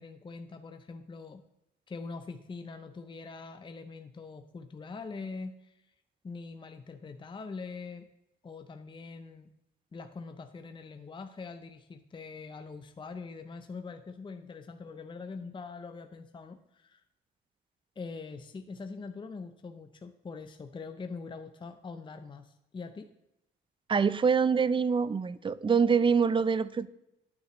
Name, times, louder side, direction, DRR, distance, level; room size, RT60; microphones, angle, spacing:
voice 1, 0.0-1.4 1.9-5.9 6.2-8.0 8.4-9.5 9.9-17.0 18.0-23.1, left 4 dB, 25° left, 7 dB, 0.6 m, -43 dB
voice 2, 23.9-26.9, right 6 dB, 25° right, 17 dB, 0.4 m, -25 dB
9.6 x 9.2 x 3.1 m, 0.88 s
cardioid pair, 90°, 20 cm